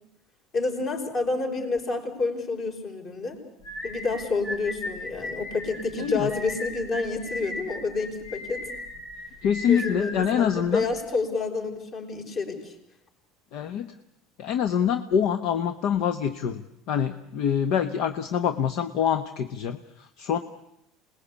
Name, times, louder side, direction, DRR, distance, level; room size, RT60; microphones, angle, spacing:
voice 1, 0.5-3.4 3.8-8.7 9.7-12.8, left 3 dB, 35° left, 4 dB, 5.2 m, -29 dB
sound 1, 3.6-11.0, left 1 dB, 75° left, 7.3 m, -37 dB
voice 2, 6.0-6.3 9.4-10.9 13.5-13.9 14.4-20.4, left 8 dB, 55° left, 10 dB, 1.1 m, -25 dB
27.0 x 20.0 x 8.4 m, 0.79 s
supercardioid pair, 140°, 0 cm